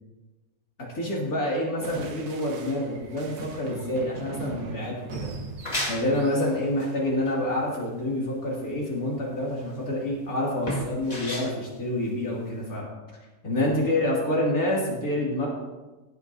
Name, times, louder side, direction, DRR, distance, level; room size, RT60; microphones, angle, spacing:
voice 1, 0.9-5.3 5.8-12.9 13.4-15.5, left 1 dB, 70° left, -4 dB, 3.0 m, -27 dB
sound 1, 1.8-6.9, right 4 dB, 85° right, 1.5 m, -40 dB
sound 2, 5.3-12.8, equal, 25° left, 1.8 m, -36 dB
16.0 x 8.5 x 2.7 m, 1.2 s
omnidirectional pair, 1.6 m